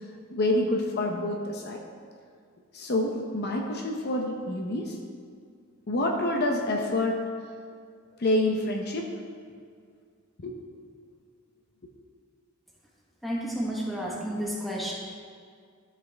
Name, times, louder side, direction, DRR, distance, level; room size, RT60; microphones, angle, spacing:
voice 1, 0.3-1.8 2.7-5.0 5.9-7.2 8.2-9.1 10.4-10.5, left 1 dB, 45° left, 1 dB, 0.7 m, -27 dB
voice 2, 13.2-14.9, equal, ahead, -4 dB, 1.2 m, -31 dB
13.0 x 5.9 x 3.4 m, 2.1 s
head